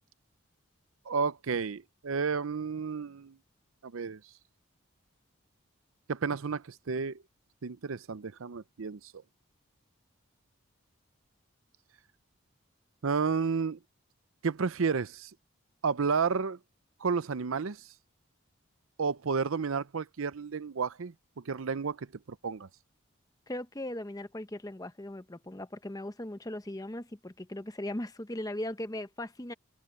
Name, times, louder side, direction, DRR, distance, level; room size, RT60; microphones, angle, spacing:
voice 1, 1.1-3.4 3.8-4.2 6.1-7.2 7.6-9.0 13.0-13.8 14.4-15.3 15.8-16.6 17.0-17.8 19.0-22.1 22.4-22.7, right 5 dB, 80° right, 0.6 m, -31 dB
voice 2, 23.5-29.5, left 1 dB, 15° left, 0.7 m, -38 dB
head